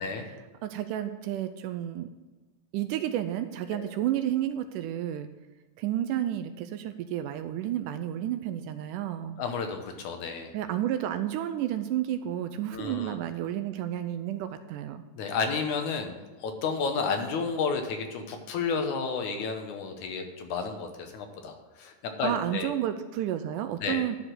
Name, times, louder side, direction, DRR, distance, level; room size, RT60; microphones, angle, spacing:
voice 1, 0.3-2.1 2.7-5.3 5.8-9.4 10.5-15.0 22.2-24.2, right 11 dB, 80° right, 10 dB, 2.0 m, -31 dB
voice 2, 9.4-10.5 12.7-13.1 15.2-22.7 23.8-24.1, left 5 dB, 70° left, 4 dB, 2.2 m, -32 dB
12.0 x 5.1 x 8.0 m, 1.2 s
omnidirectional pair, 3.9 m